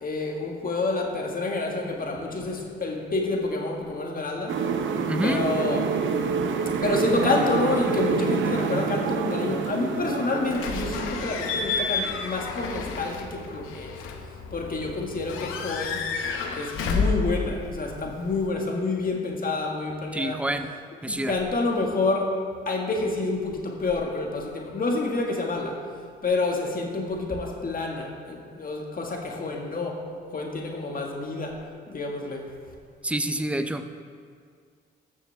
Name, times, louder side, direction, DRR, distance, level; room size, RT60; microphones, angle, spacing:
voice 1, 0.0-4.6 5.2-5.8 6.8-14.0 14.5-16.0 16.6-20.4 21.1-22.4 22.7-25.8 26.2-30.0 30.3-31.6 31.9-32.5, left 3 dB, 45° left, 0 dB, 1.8 m, -28 dB
sound 1, 4.5-12.1, right 6 dB, 70° right, 0.7 m, -27 dB
voice 2, 5.1-5.4 20.1-20.7 21.0-21.3 33.0-33.8, right 1 dB, 5° right, 8 dB, 0.6 m, -27 dB
Slam / Squeak / Alarm, 10.5-18.5, left 4 dB, 90° left, 0.8 m, -31 dB
14.0 x 6.5 x 3.4 m, 2.1 s
supercardioid pair, 65°, 21 cm